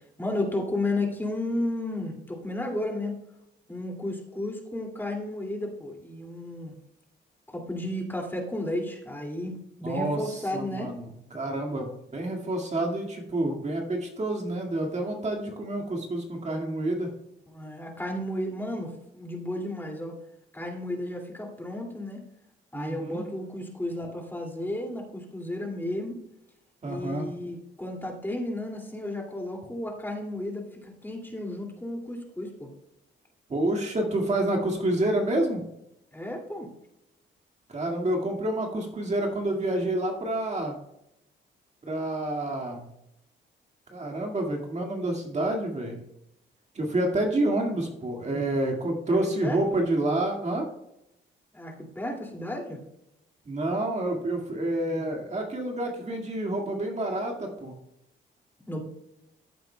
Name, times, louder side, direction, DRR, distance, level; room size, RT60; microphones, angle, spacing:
voice 1, 0.0-3.2 3.7-6.8 7.5-10.9 17.5-20.2 20.5-22.2 22.7-26.2 26.8-32.7 36.1-36.7 49.4-49.6 51.5-52.8 58.7-58.8, left 1 dB, 10° left, 0 dB, 2.5 m, -33 dB
voice 2, 9.8-17.1 22.7-23.3 26.8-27.3 33.5-35.6 37.7-40.8 41.9-42.9 43.9-46.0 46.7-50.7 53.5-57.7, right 1 dB, 35° right, 2 dB, 2.0 m, -28 dB
15.0 x 7.8 x 2.3 m, 0.82 s
cardioid pair, 90°, 20 cm